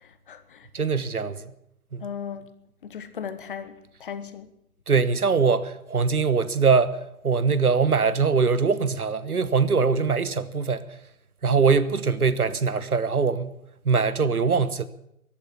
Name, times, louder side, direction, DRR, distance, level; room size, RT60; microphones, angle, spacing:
voice 1, 0.0-0.7 2.0-2.5 2.8-4.5, left 7 dB, 35° left, 1.2 m, -37 dB
voice 2, 0.7-1.5 1.9-2.0 4.9-7.0 7.2-10.8 11.4-13.6 13.8-14.8, right 5 dB, 80° right, 1.2 m, -22 dB
15.0 x 11.5 x 8.3 m
figure-of-eight pair, 140°, 44 cm